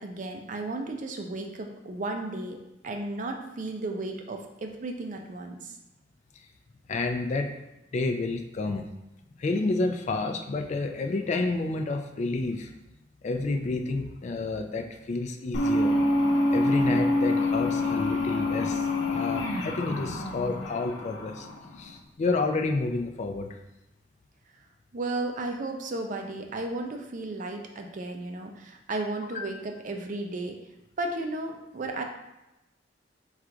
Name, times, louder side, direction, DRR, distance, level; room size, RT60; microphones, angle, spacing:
voice 1, 0.0-2.6 2.8-5.8 24.9-30.6 31.0-32.0, right 2 dB, 45° right, 3 dB, 0.4 m, -34 dB
voice 2, 6.9-7.6 7.9-8.9 9.4-12.7 13.2-15.9 16.5-21.5 21.8-23.5 29.3-29.5, left 3 dB, 40° left, 4 dB, 0.3 m, -30 dB
sound 1, 15.5-21.9, left 2 dB, 85° left, 0.6 m, -26 dB
4.5 x 2.4 x 3.7 m, 0.92 s
head